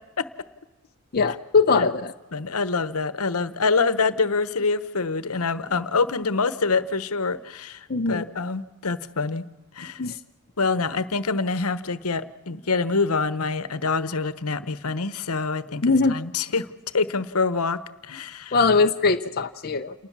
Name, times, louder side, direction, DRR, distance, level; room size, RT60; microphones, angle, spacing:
voice 1, 1.1-2.1 7.9-8.2 10.0-10.2 15.8-16.1 18.5-19.9, left 4 dB, 45° left, 5 dB, 0.7 m, -21 dB
voice 2, 2.3-9.4 9.7-10.0 10.6-16.7 16.9-18.6, left 4 dB, 75° left, 14 dB, 1.1 m, -26 dB
28.5 x 19.5 x 7.3 m, 1.1 s
head